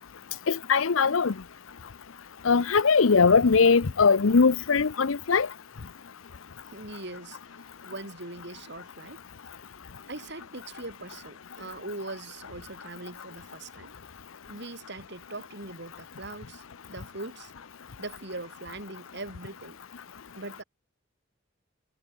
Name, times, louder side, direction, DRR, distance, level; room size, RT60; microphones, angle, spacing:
voice 1, 0.5-1.3 2.4-5.5, left 5 dB, 85° left, 0.7 m, -21 dB
voice 2, 6.7-9.2 10.1-13.9 14.5-16.6 16.9-17.5 18.0-19.8 20.4-20.6, right 2 dB, 55° right, 5.1 m, -41 dB
head